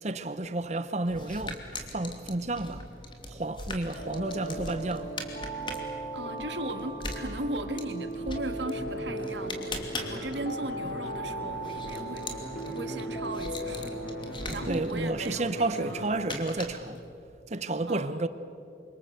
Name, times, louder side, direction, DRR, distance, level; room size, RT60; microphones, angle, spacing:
voice 1, 0.0-2.8 3.3-5.1 14.5-17.0 17.5-18.3, right 2 dB, 40° right, 0.9 m, -31 dB
sound 1, 1.1-17.1, left 2 dB, 25° left, 2.8 m, -42 dB
sound 2, 4.0-14.8, right 1 dB, 45° left, 3.4 m, -38 dB
voice 2, 6.1-12.3 12.6-14.0 14.5-16.1 17.9-18.2, right 2 dB, 90° right, 2.1 m, -37 dB
sound 3, 8.7-16.1, left 1 dB, 80° left, 7.7 m, -41 dB
28.5 x 25.0 x 8.1 m
head